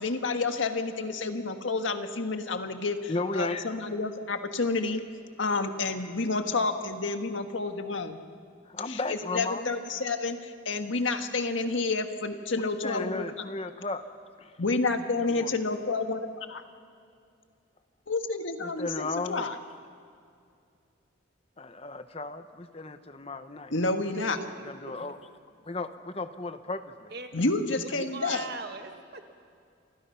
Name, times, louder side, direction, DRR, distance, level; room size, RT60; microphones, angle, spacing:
voice 1, 0.0-5.0 5.4-8.2 8.9-13.2 14.6-16.6 18.1-19.5 23.7-24.4 27.3-28.5, left 3 dB, 75° left, 6 dB, 1.6 m, -29 dB
voice 2, 3.1-3.8 8.6-9.7 12.5-14.0 14.4-14.6 15.3-15.5 18.6-19.5 21.6-23.7 24.6-25.2 25.6-27.1, left 3 dB, 30° left, 10 dB, 1.0 m, -35 dB
voice 3, 24.1-24.5 27.1-27.3 27.8-29.2, right 3 dB, 55° right, 5 dB, 1.8 m, -40 dB
29.5 x 25.0 x 5.8 m, 2.4 s
head